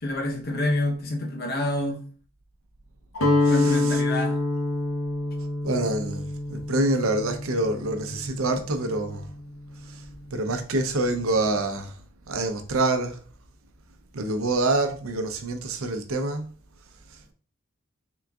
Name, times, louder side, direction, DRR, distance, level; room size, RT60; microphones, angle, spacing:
voice 1, 0.0-2.0 3.5-4.4, left 1 dB, 45° left, 0.8 m, -27 dB
Guitar, 3.2-9.2, left 2 dB, 90° left, 0.8 m, -27 dB
voice 2, 3.4-4.0 5.6-9.3 9.8-10.0 10.3-11.9 12.3-13.2 14.1-16.5, right 2 dB, 80° right, 0.6 m, -26 dB
3.8 x 3.7 x 2.3 m
head